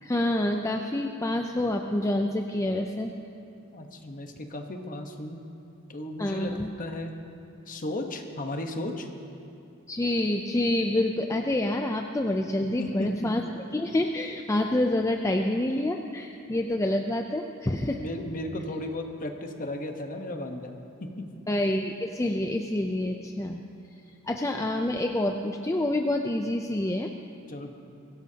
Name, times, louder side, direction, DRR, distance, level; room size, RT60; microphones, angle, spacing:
voice 1, 0.0-3.1 6.2-6.7 9.9-13.4 13.7-18.0 21.5-23.6 24.2-27.1, left 1 dB, 15° left, 3 dB, 0.5 m, -27 dB
voice 2, 3.7-5.4 5.9-6.5 6.8-7.1 7.7-9.1 12.8-13.3 18.0-20.7 21.0-21.3 27.5-27.7, left 1 dB, 40° left, 4 dB, 1.1 m, -35 dB
22.5 x 16.5 x 2.8 m, 2.6 s
head